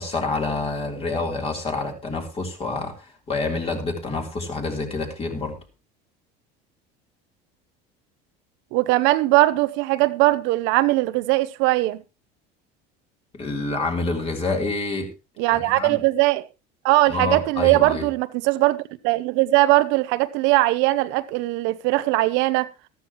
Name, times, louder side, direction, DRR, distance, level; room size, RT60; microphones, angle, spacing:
voice 1, 0.0-5.6 13.3-15.1 15.5-16.0 17.1-18.1, left 3 dB, 30° left, 3.7 m, -27 dB
voice 2, 8.7-12.0 15.4-16.5 16.8-18.8 19.0-22.7, right 19 dB, 75° right, 0.8 m, -20 dB
13.5 x 13.5 x 3.0 m
supercardioid pair, 120°, 20 cm